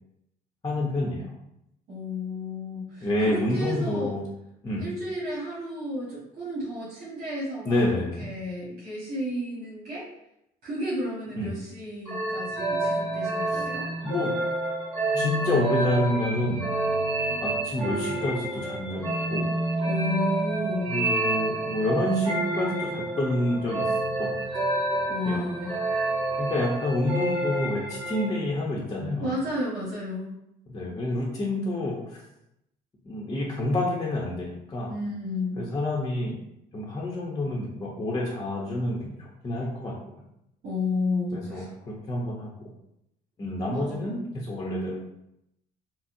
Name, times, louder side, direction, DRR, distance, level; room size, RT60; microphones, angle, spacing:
voice 1, 0.6-1.3 3.0-4.2 4.6-4.9 7.6-8.3 11.4-11.5 13.5-13.7 14.0-14.3 15.2-16.7 17.4-19.5 20.9-23.8 24.2-24.4 25.2-25.4 26.4-29.3 30.7-32.2 33.0-34.9 35.6-36.3 36.7-39.9 41.3-42.7 43.4-45.0, left 1 dB, 25° left, -4 dB, 0.7 m, -28 dB
voice 2, 1.9-4.1 4.8-10.0 10.6-13.9 19.9-21.0 25.1-25.8 29.2-30.4 34.9-35.6 40.6-41.7 43.7-44.1, left 1 dB, 60° right, -9 dB, 1.5 m, -32 dB
sound 1, 12.1-28.5, right 2 dB, 30° right, 1.4 m, -28 dB
4.1 x 2.0 x 2.6 m, 0.81 s
cardioid pair, 110°, 17 cm